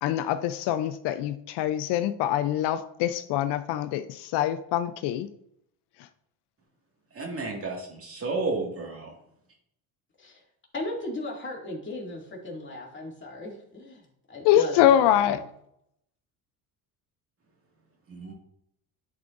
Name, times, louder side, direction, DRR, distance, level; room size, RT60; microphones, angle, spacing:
voice 1, 0.0-5.3 14.4-15.4, left 11 dB, 75° left, 11 dB, 0.6 m, -24 dB
voice 2, 7.1-9.1 18.1-18.3, right 3 dB, 35° right, 0 dB, 2.0 m, -32 dB
voice 3, 10.7-15.4, left 2 dB, 25° left, -2 dB, 2.4 m, -37 dB
11.0 x 4.7 x 2.5 m, 0.74 s
cardioid pair, 105°, 41 cm